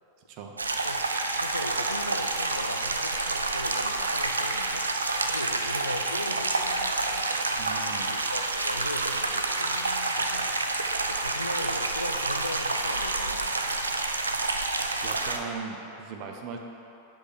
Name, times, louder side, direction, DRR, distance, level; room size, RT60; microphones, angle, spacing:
sound 1, 0.6-15.4, right 3 dB, 75° right, 0.4 m, -28 dB
voice 1, 1.3-4.9 5.2-7.3 8.1-10.5 11.1-13.8, left 1 dB, 85° left, 6 dB, 0.4 m, -38 dB
voice 2, 7.6-8.2 15.0-16.6, right 5 dB, 40° right, 2 dB, 0.7 m, -39 dB
8.1 x 3.7 x 6.0 m, 2.9 s
figure-of-eight pair, 90°, 0 cm